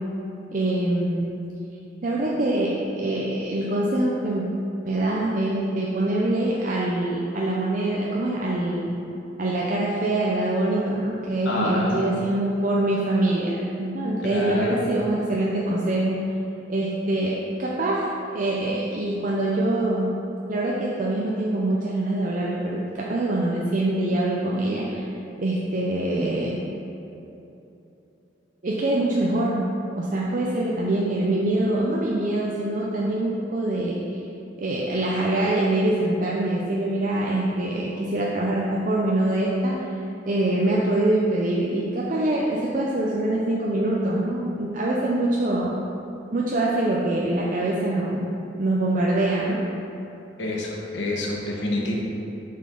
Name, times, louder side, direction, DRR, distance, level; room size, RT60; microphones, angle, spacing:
voice 1, 0.5-1.3 2.0-4.4 4.8-9.0 9.4-16.2 16.7-20.1 20.5-25.1 25.4-26.6 28.6-29.6 29.9-34.2 34.6-39.7 40.3-45.8 46.3-48.3 48.6-49.6, right 1 dB, 45° right, -4 dB, 0.6 m, -24 dB
voice 2, 11.4-12.0 14.2-14.8 50.4-51.9, left 1 dB, 75° left, -2 dB, 1.2 m, -27 dB
7.5 x 5.7 x 3.8 m, 2.9 s
head